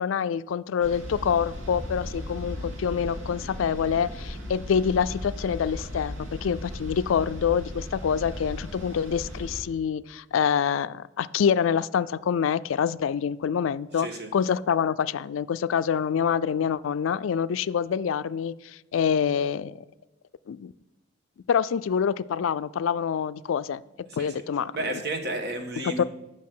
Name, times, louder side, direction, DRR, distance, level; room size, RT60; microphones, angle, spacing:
voice 1, 0.0-18.5 18.9-19.8 20.5-20.7 21.5-23.8 24.2-24.7 25.8-26.0, left 7 dB, 80° left, 16 dB, 0.4 m, -26 dB
sound 1, 0.8-9.6, left 1 dB, 85° right, 2.3 m, -37 dB
voice 2, 14.0-14.3 24.1-24.4 24.7-26.0, right 2 dB, 60° right, 5 dB, 1.4 m, -32 dB
8.4 x 6.2 x 7.6 m, 1.1 s
head